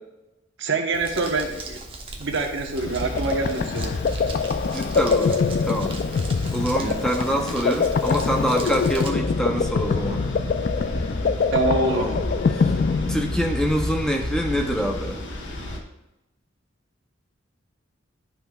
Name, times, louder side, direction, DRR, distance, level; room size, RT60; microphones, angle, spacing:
voice 1, 0.6-1.8 2.2-3.9 6.8-6.9 11.5-12.2, right 3 dB, 65° right, 3 dB, 1.1 m, -25 dB
Crumpling crinkling, 0.9-9.1, right 2 dB, 30° right, 0.9 m, -39 dB
sound 1, 2.7-15.8, left 1 dB, 65° left, 1.1 m, -32 dB
sound 2, 2.9-13.7, left 5 dB, 45° left, 0.3 m, -24 dB
voice 2, 4.6-5.9 6.5-10.2 11.9-12.2 12.5-12.8 13.1-15.2, equal, 5° left, 3 dB, 0.6 m, -26 dB
11.0 x 5.6 x 2.3 m, 0.96 s
head